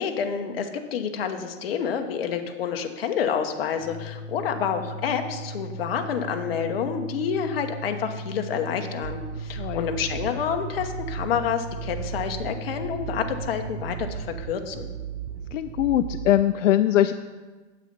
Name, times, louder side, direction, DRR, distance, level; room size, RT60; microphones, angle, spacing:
voice 1, 0.0-14.9, left 7 dB, 50° left, 5 dB, 0.9 m, -28 dB
Organ, 3.7-14.1, right 1 dB, 25° left, 0.4 m, -37 dB
sound 1, 9.0-16.4, right 9 dB, 70° right, 0.5 m, -36 dB
voice 2, 9.6-9.9 15.5-17.1, left 12 dB, 75° left, 10 dB, 0.5 m, -21 dB
8.3 x 7.8 x 5.2 m, 1.3 s
supercardioid pair, 175°, 38 cm